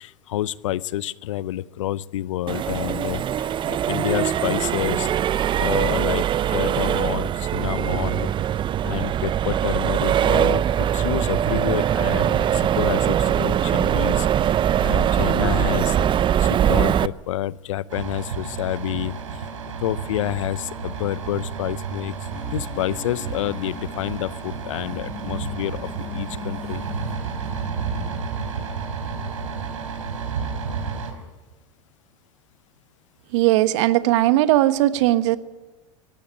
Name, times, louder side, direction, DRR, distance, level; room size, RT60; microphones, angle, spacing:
voice 1, 0.0-5.1 5.6-8.3 8.8-16.0 16.4-19.5 19.8-22.2 22.5-26.8, left 13 dB, 75° left, 20 dB, 0.6 m, -29 dB
Accelerating revving vroom, 2.5-17.1, right 10 dB, 30° right, 0.6 m, -22 dB
sound 1, 17.9-31.1, right 5 dB, 85° right, 4.0 m, -31 dB
sound 2, 22.3-28.2, left 6 dB, 25° left, 2.0 m, -41 dB
voice 2, 33.3-35.4, right 15 dB, 65° right, 13 dB, 1.2 m, -18 dB
18.5 x 16.0 x 9.9 m, 1.2 s
hypercardioid pair, 90°, 16 cm